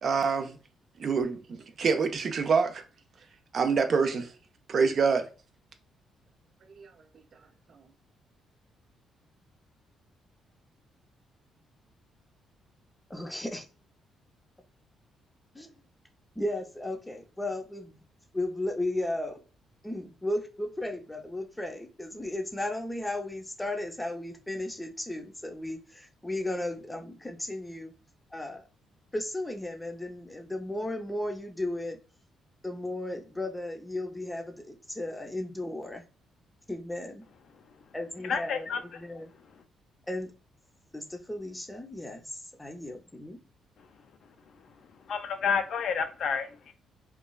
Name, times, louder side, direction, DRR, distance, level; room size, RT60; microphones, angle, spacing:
voice 1, 0.0-0.6 1.0-2.8 3.5-4.3 4.7-5.3 6.8-6.9, right 5 dB, 50° right, 0.4 m, -26 dB
voice 2, 13.1-13.7 15.5-15.7 16.4-18.0 18.3-19.4 19.8-27.9 28.3-28.6 29.1-32.0 32.6-36.0 36.7-37.3 37.9-38.7 39.0-39.3 40.1-40.3 40.9-43.4, left 1 dB, 10° left, 0.6 m, -35 dB
voice 3, 38.2-39.2 45.0-46.7, left 6 dB, 65° left, 0.4 m, -30 dB
3.0 x 2.3 x 2.2 m
cardioid pair, 90°, 0 cm